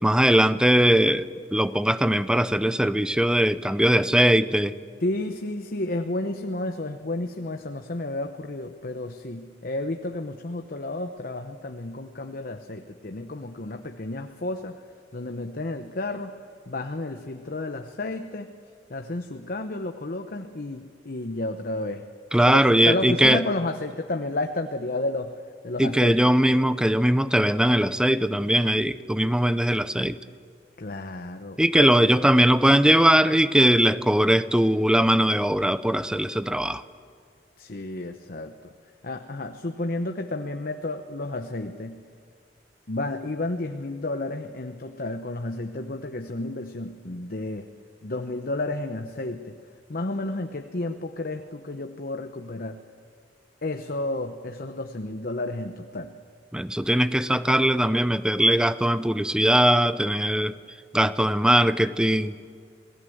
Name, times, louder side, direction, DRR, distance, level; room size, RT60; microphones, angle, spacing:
voice 1, 0.0-4.7 22.3-23.4 25.8-30.2 31.6-36.8 56.5-60.6 60.9-62.4, right 1 dB, 5° right, 14 dB, 0.6 m, -20 dB
voice 2, 5.0-14.8 15.1-16.4 16.7-18.5 18.9-22.0 22.5-26.2 30.8-31.9 37.6-38.7 39.0-42.0 42.9-47.7 48.0-49.6 49.9-52.8 53.6-56.1, left 2 dB, 55° left, 6 dB, 0.9 m, -31 dB
27.0 x 18.5 x 7.9 m, 2.2 s
head